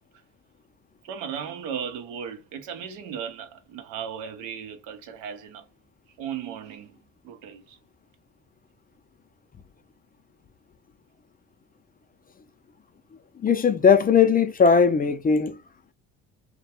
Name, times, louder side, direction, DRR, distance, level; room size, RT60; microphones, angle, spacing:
voice 1, 1.0-5.7 6.2-7.0 7.2-7.8, right 8 dB, 90° right, 0.7 m, -36 dB
voice 2, 13.4-15.6, left 6 dB, 25° left, 0.4 m, -19 dB
2.2 x 2.2 x 2.8 m
supercardioid pair, 65°, 38 cm